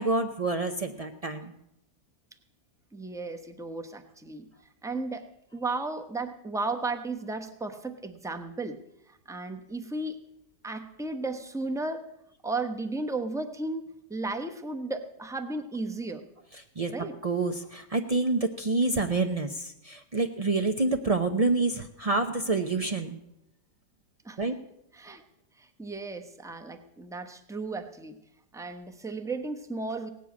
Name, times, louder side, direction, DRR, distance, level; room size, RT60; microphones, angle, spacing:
voice 1, 0.0-1.5 16.8-16.9 17.2-23.1 24.4-24.6, right 3 dB, 75° right, 4 dB, 0.3 m, -27 dB
voice 2, 2.9-4.5 4.8-8.8 9.1-10.2 10.6-12.1 12.4-16.3 16.9-17.2 24.2-24.6 24.9-25.2 25.6-28.2 28.5-30.1, right 3 dB, 5° right, 6 dB, 0.6 m, -34 dB
18.0 x 7.7 x 8.4 m, 0.82 s
omnidirectional pair, 1.8 m